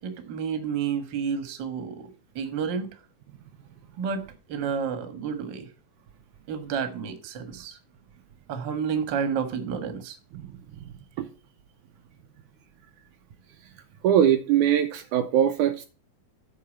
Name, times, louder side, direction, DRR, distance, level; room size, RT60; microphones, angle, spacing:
voice 1, 0.0-2.0 2.3-2.9 4.0-4.2 4.5-5.7 6.5-7.8 8.5-10.2, right 6 dB, 45° right, 1.5 m, -30 dB
voice 2, 14.0-15.9, right 10 dB, 80° right, 2.0 m, -21 dB
8.4 x 4.8 x 7.3 m
omnidirectional pair, 3.8 m